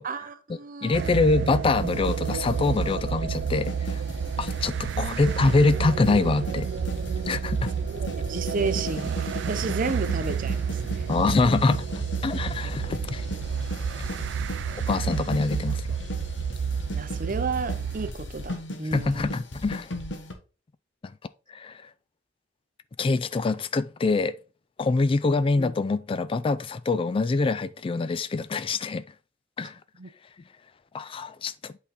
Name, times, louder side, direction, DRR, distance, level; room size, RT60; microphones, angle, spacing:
voice 1, 0.0-1.1 5.0-5.2 7.9-11.1 16.9-19.4 30.0-30.1, right 4 dB, 45° right, 0.7 m, -32 dB
voice 2, 0.8-4.0 4.4-6.7 7.3-7.6 11.1-11.9 12.2-13.2 14.9-15.8 18.9-19.9 21.5-21.8 23.0-24.3 24.8-29.0 29.6-29.8 30.9-31.7, left 3 dB, 30° left, 0.3 m, -24 dB
sound 1, 0.9-18.1, right 7 dB, 70° right, 0.3 m, -30 dB
sound 2, 1.7-20.3, left 1 dB, 75° left, 1.3 m, -37 dB
8.2 x 3.8 x 4.1 m
head